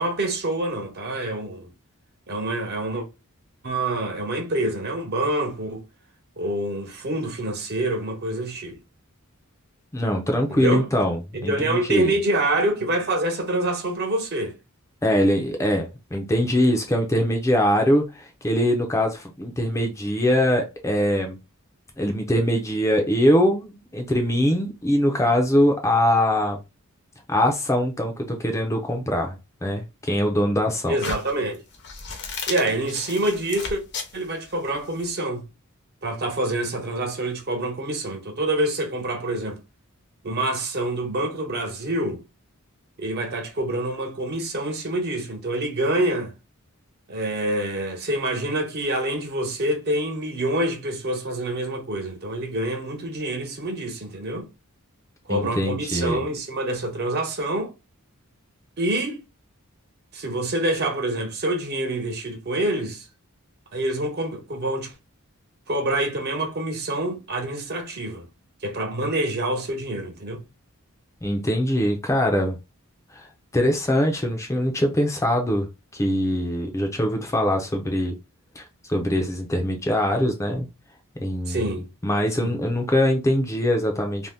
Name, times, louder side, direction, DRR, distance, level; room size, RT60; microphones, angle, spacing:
voice 1, 0.0-1.7 2.3-3.1 3.6-5.8 6.4-8.8 10.5-10.8 11.3-14.6 30.9-31.6 32.5-33.8 34.1-35.5 36.0-39.6 40.2-42.2 43.0-46.3 47.1-54.5 55.3-57.7 58.8-59.2 60.1-63.0 63.7-64.9 65.7-68.3 68.6-70.4 81.5-81.9 82.4-82.5, right 1 dB, 50° right, 0.7 m, -26 dB
voice 2, 9.9-12.1 15.0-21.4 22.0-26.6 27.3-29.4 29.6-31.0 55.3-56.3 71.2-72.6 73.2-73.3 73.5-75.7 75.9-78.1 78.6-78.7 78.9-80.7 81.2-81.8 82.0-84.3, equal, 15° left, 0.5 m, -22 dB
sound 1, 31.0-35.1, left 4 dB, 55° left, 0.7 m, -34 dB
2.7 x 2.1 x 3.4 m
head